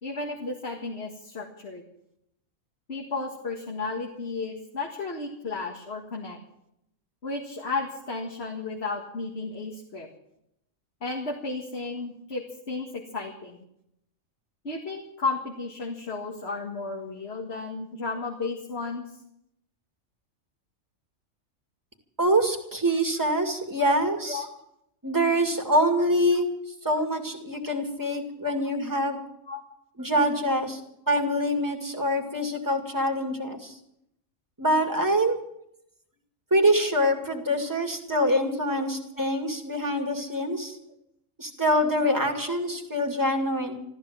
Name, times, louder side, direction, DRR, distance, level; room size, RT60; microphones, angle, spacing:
voice 1, 0.0-1.8 2.9-6.4 7.2-10.1 11.0-13.6 14.6-19.1 24.3-24.5 25.7-25.9 29.5-29.6 38.7-38.9 42.2-42.5, left 3 dB, 50° left, 1 dB, 2.2 m, -33 dB
voice 2, 22.2-24.5 25.0-26.5 26.8-29.2 30.0-30.8 31.1-33.7 34.6-35.4 36.5-40.8 41.4-43.8, equal, 15° right, 2 dB, 2.4 m, -25 dB
14.0 x 13.5 x 7.5 m, 0.76 s
omnidirectional pair, 1.4 m